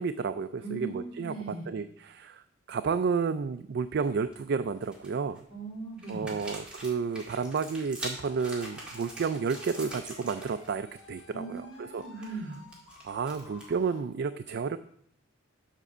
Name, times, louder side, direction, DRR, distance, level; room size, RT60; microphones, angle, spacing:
voice 1, 0.0-1.3 1.7-2.4 2.7-5.4 6.1-12.0 13.0-14.8, right 5 dB, 55° right, 11 dB, 0.3 m, -31 dB
voice 2, 0.6-1.6 5.5-6.3 11.3-12.6, right 3 dB, 25° right, -7 dB, 4.5 m, -39 dB
sound 1, 3.9-4.3 4.8-5.4 6.0-10.7 10.9-11.2 11.6-13.8, right 1 dB, 5° right, 2.0 m, -44 dB
sound 2, 8.1-14.0, left 3 dB, 65° left, 1.6 m, -53 dB
7.4 x 5.9 x 6.6 m, 0.66 s
head